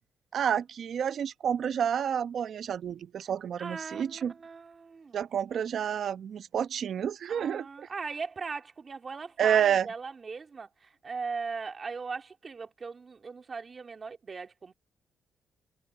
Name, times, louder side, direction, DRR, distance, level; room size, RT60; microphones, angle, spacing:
voice 1, 0.3-4.3 5.1-7.7 9.4-9.9, right 8 dB, 60° right, 1.0 m, -29 dB
voice 2, 3.6-5.3 7.3-14.7, right 5 dB, 35° right, 2.9 m, -39 dB
cardioid pair, 90°, 0 cm